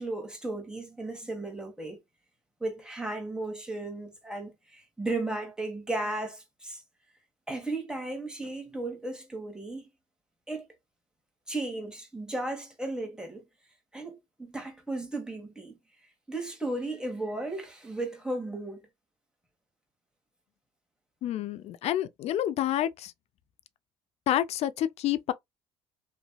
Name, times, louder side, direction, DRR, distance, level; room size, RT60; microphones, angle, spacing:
voice 1, 0.0-2.0 2.6-6.8 7.5-9.8 10.5-10.7 11.5-13.4 13.9-15.8 16.3-18.9, right 2 dB, 5° right, 1.3 m, -35 dB
voice 2, 21.2-23.1 24.3-25.3, left 12 dB, 60° left, 0.4 m, -28 dB
3.0 x 2.5 x 2.2 m
supercardioid pair, 75°, 12 cm